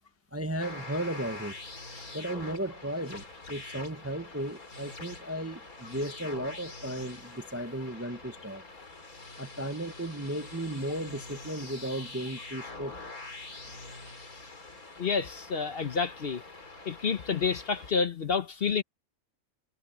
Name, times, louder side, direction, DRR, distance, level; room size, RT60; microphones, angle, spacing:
voice 1, 0.3-1.6 2.1-8.6 9.4-12.9, right 1 dB, 15° right, 0.6 m, -35 dB
sound 1, 0.6-17.9, left 3 dB, 85° left, 4.3 m, -45 dB
voice 2, 15.0-16.4 16.9-18.8, left 5 dB, 50° left, 1.0 m, -29 dB
omnidirectional pair, 1.5 m